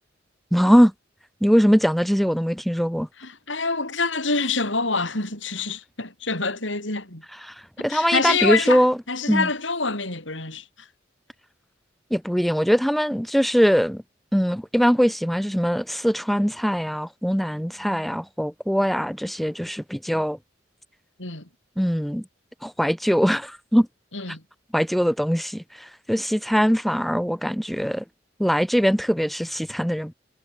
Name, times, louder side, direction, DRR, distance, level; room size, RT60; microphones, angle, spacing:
voice 1, 0.5-0.9 1.4-3.1 7.4-9.0 9.3-9.5 12.1-14.0 14.3-20.4 21.8-22.2 22.6-23.9 24.7-28.0 28.4-30.1, equal, ahead, 2.8 m, -21 dB
voice 2, 3.2-7.2 7.8-10.9 21.2-21.5 24.1-24.4, left 4 dB, 80° left, 7.6 m, -26 dB
head